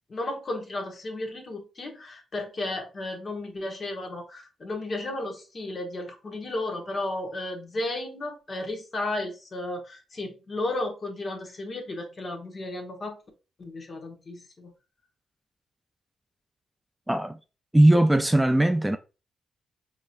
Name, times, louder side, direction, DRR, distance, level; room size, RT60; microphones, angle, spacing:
voice 1, 0.1-13.2 13.6-14.7, left 2 dB, 45° left, 1.3 m, -34 dB
voice 2, 17.1-17.4 17.7-19.0, right 1 dB, 10° right, 0.4 m, -19 dB
4.6 x 2.9 x 2.5 m
supercardioid pair, 55°, 0 cm